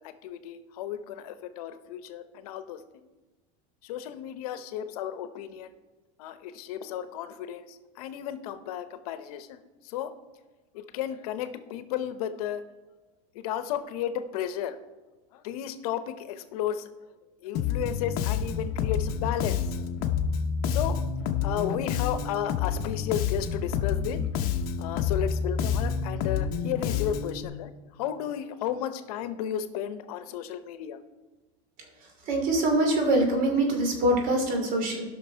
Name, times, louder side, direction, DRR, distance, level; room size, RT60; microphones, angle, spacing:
voice 1, 0.0-3.1 3.8-5.7 6.2-10.1 10.7-12.6 13.3-14.8 15.3-16.9 17.4-19.6 20.6-21.0 21.4-24.2 24.8-31.0, left 10 dB, 80° left, 11 dB, 0.9 m, -33 dB
Bass guitar, 17.5-27.4, left 7 dB, 50° left, 0.9 m, -28 dB
voice 2, 32.2-35.0, right 1 dB, 50° right, 2 dB, 2.8 m, -24 dB
16.0 x 5.9 x 4.4 m, 1.2 s
supercardioid pair, 150°, 19 cm